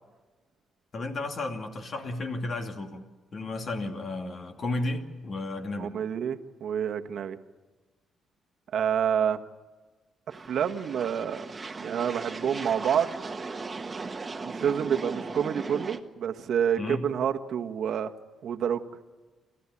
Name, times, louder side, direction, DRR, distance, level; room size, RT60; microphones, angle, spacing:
voice 1, 0.9-3.0 3.3-5.9 16.8-17.1, left 2 dB, 45° left, 5 dB, 2.5 m, -33 dB
voice 2, 5.8-7.4 8.7-9.4 10.5-11.5 11.8-13.1 14.4-18.1 18.4-18.8, right 8 dB, 65° right, 7 dB, 1.3 m, -28 dB
sound 1, 10.3-16.0, right 3 dB, 25° right, 1.4 m, -37 dB
28.0 x 14.0 x 9.8 m, 1.3 s
cardioid pair, 90°, 0 cm